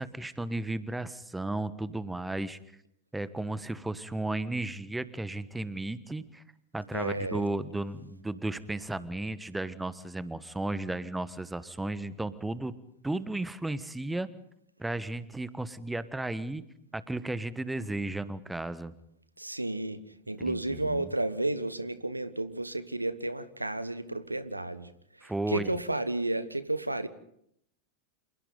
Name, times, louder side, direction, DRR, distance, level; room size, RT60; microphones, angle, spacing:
voice 1, 0.0-2.6 3.1-6.4 6.7-12.7 13.0-14.3 14.8-16.6 16.9-18.9 20.4-21.1 25.2-25.7, right 2 dB, 5° right, 15 dB, 1.3 m, -34 dB
voice 2, 6.9-7.5 19.4-27.1, right 2 dB, 85° right, 14 dB, 1.2 m, -32 dB
29.5 x 27.5 x 4.0 m, 0.73 s
figure-of-eight pair, 90°, 0 cm